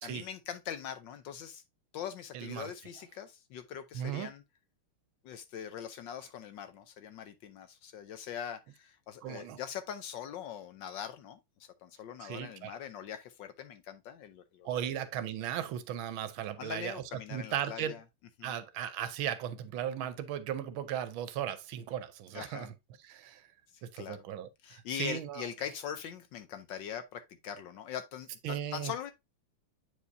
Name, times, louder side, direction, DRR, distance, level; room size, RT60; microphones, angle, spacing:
voice 1, 0.0-1.6 1.9-4.4 5.2-14.8 16.6-18.0 18.4-18.6 22.3-22.7 23.7-24.2 24.6-29.1, left 9 dB, 70° left, 1.2 m, -42 dB
voice 2, 2.3-2.7 3.9-4.3 9.2-9.6 12.2-12.7 14.6-17.0 17.3-18.0 18.4-22.7 23.1-23.5 23.8-25.5 28.4-28.9, right 10 dB, 75° right, 1.4 m, -37 dB
8.2 x 4.7 x 2.6 m
omnidirectional pair, 2.4 m